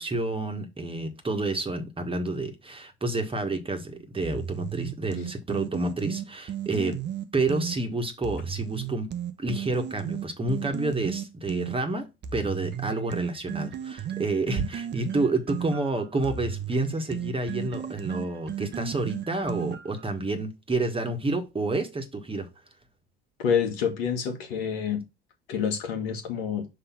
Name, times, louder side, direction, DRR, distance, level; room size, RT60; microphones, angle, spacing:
voice 1, 0.0-7.0 7.3-22.5, right 2 dB, 20° right, 1.4 m, -29 dB
sound 1, 4.2-7.8 8.2-11.8 12.2-20.0, right 10 dB, 35° right, 0.8 m, -34 dB
voice 2, 23.4-25.0 25.5-26.7, left 7 dB, 75° left, 1.6 m, -27 dB
5.7 x 3.2 x 5.7 m
hypercardioid pair, 70°, 30 cm